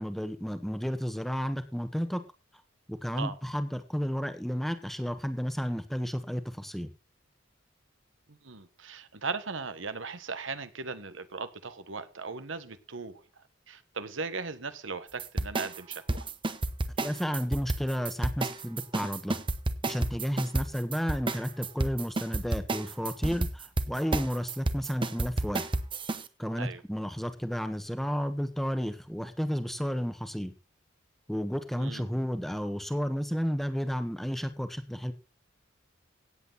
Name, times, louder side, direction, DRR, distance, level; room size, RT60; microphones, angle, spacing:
voice 1, 0.0-2.2 2.9-6.9 17.0-19.4 19.9-25.7 26.4-30.5 31.3-35.1, equal, ahead, 1.3 m, -32 dB
voice 2, 8.3-13.2 13.7-16.3 26.6-26.8 31.8-32.2, right 4 dB, 90° right, 1.4 m, -38 dB
sound 1, 15.2-26.2, right 2 dB, 25° right, 1.0 m, -31 dB
17.0 x 8.2 x 4.1 m
head